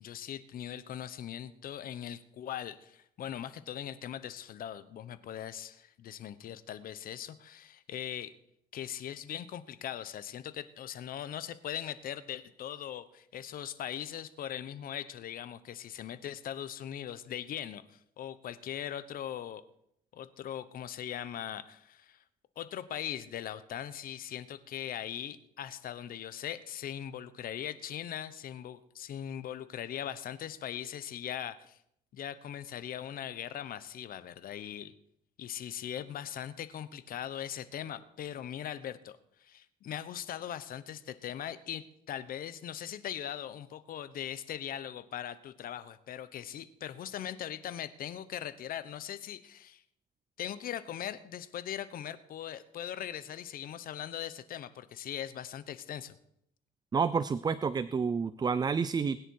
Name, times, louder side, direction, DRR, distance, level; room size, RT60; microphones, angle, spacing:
voice 1, 0.0-8.3 8.7-19.6 20.1-22.2 22.6-31.8 32.1-34.9 35.4-49.8 50.4-56.2, left 10 dB, 60° left, 14 dB, 1.1 m, -40 dB
voice 2, 56.9-59.2, right 5 dB, 25° right, 15 dB, 0.5 m, -29 dB
21.0 x 10.0 x 4.8 m, 0.74 s
cardioid pair, 110°, 17 cm